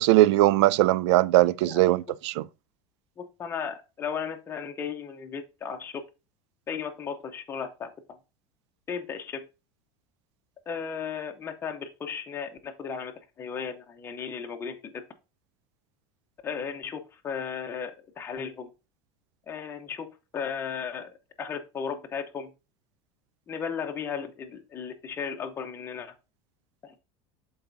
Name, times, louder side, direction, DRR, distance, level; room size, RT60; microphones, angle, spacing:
voice 1, 0.0-2.4, right 16 dB, 85° right, 0.4 m, -20 dB
voice 2, 3.2-6.0 6.7-8.2 8.9-9.5 10.7-15.0 16.4-18.7 19.5-21.1 21.4-22.5 23.5-26.1 26.8-27.0, left 6 dB, 15° left, 0.7 m, -35 dB
11.5 x 4.1 x 2.6 m
cardioid pair, 165°, 14 cm